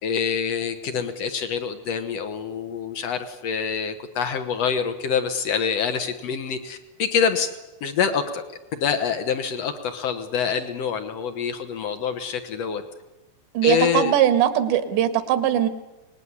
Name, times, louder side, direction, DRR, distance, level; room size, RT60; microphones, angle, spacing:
voice 1, 0.0-7.5 7.8-12.8 13.6-14.1, left 6 dB, 75° left, 8 dB, 1.4 m, -26 dB
voice 2, 13.6-15.7, right 10 dB, 80° right, 9 dB, 3.9 m, -20 dB
24.5 x 20.0 x 9.8 m, 1.0 s
omnidirectional pair, 5.0 m